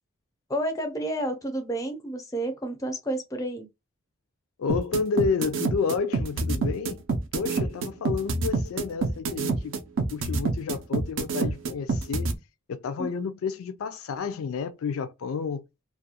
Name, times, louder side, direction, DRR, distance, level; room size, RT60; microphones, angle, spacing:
voice 1, 0.5-3.7 13.0-13.1, right 1 dB, 15° left, 0.4 m, -30 dB
voice 2, 4.6-7.0 7.3-9.8 10.1-12.3 12.7-15.6, left 5 dB, 80° left, 0.3 m, -30 dB
sound 1, 4.7-12.3, right 3 dB, 65° right, 0.4 m, -26 dB
2.4 x 2.2 x 2.7 m
head